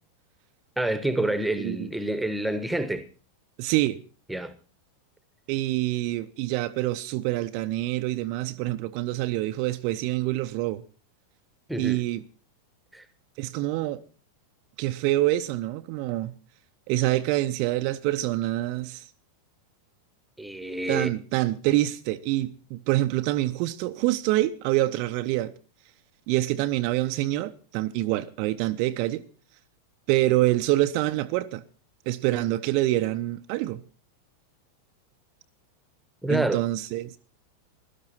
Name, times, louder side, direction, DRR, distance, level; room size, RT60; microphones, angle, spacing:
voice 1, 0.8-3.0 4.3-4.6 11.7-12.0 12.9-13.0 20.4-21.1 36.2-36.6, right 1 dB, ahead, 1.3 m, -28 dB
voice 2, 1.6-1.9 3.6-4.0 5.5-10.8 11.8-12.2 13.4-14.0 14.8-16.3 16.9-19.0 20.9-25.5 26.3-29.2 30.1-31.6 32.1-33.8 36.3-37.2, right 16 dB, 45° right, 0.7 m, -26 dB
16.5 x 12.5 x 4.3 m
figure-of-eight pair, 90°, 0 cm